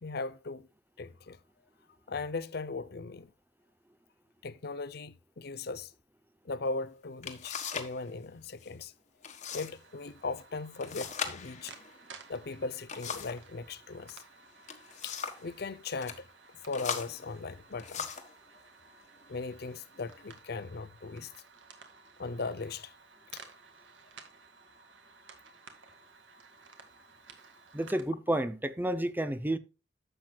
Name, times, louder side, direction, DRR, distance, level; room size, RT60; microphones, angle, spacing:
voice 1, 0.0-0.7 1.0-1.4 2.1-3.3 4.4-5.9 6.4-8.9 9.5-11.8 12.3-14.2 15.0-16.2 16.6-18.1 19.3-21.3 22.2-22.9 23.3-23.4, left 3 dB, 55° left, 0.6 m, -38 dB
sound 1, 6.7-6.8 7.2-8.0 8.2-8.7 9.2-9.7 10.0-10.1 10.8-13.5 14.4-15.5 15.9-16.2 16.7-18.4 19.1-19.3 19.8-20.3, left 6 dB, 40° left, 1.4 m, -39 dB
sound 2, 9.5-28.0, right 4 dB, 70° right, 2.0 m, -55 dB
voice 2, 27.7-29.6, right 1 dB, 10° right, 0.6 m, -30 dB
12.0 x 7.8 x 2.3 m
head